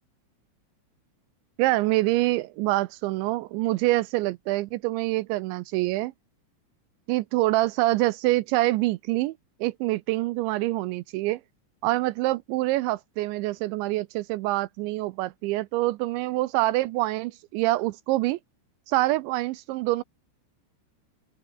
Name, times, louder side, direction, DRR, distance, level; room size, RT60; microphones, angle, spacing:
voice 1, 1.6-6.1 7.1-9.3 9.6-11.4 11.8-18.4 18.9-20.0, right 18 dB, 80° right, 2.9 m, -25 dB
open air
omnidirectional pair, 5.5 m